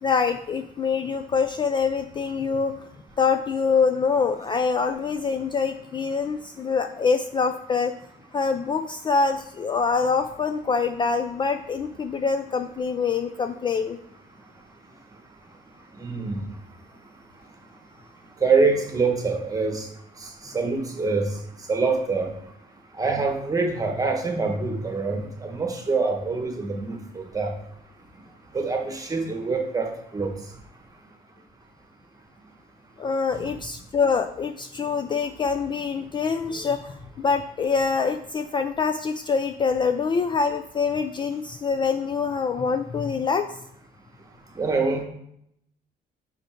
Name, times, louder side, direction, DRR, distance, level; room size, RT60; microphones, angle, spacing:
voice 1, 0.0-2.9 3.2-7.9 8.3-14.0 33.0-43.5, left 5 dB, 30° left, 8 dB, 0.3 m, -25 dB
voice 2, 16.0-16.4 18.4-19.9 20.2-21.3 21.7-22.3 23.0-27.5 28.5-30.3 33.3-33.5 44.6-45.0, right 4 dB, 20° right, 3 dB, 1.2 m, -25 dB
5.3 x 4.4 x 4.5 m, 0.75 s
cardioid pair, 110°, 17 cm